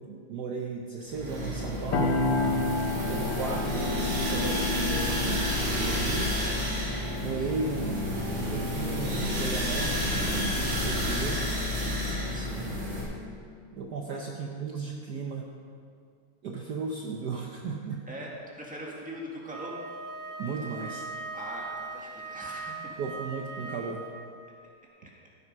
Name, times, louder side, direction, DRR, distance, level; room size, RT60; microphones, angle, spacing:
voice 1, 0.0-2.2 3.1-5.4 5.8-6.3 7.2-11.6 13.7-15.5 16.4-18.1 20.4-21.1 23.0-24.0, right 4 dB, 60° right, 1 dB, 1.2 m, -35 dB
sound 1, 1.1-13.0, left 1 dB, 80° right, 3.5 m, -30 dB
sound 2, 1.9-11.7, left 2 dB, 65° left, 1.7 m, -33 dB
voice 2, 12.3-12.9 14.1-14.2 18.1-19.7 21.3-23.0, right 1 dB, 5° right, -3 dB, 1.6 m, -42 dB
Wind instrument woodwind instrument, 19.5-24.4, right 3 dB, 30° right, 1.2 m, -40 dB
14.0 x 8.1 x 5.4 m, 2.3 s
omnidirectional pair, 2.3 m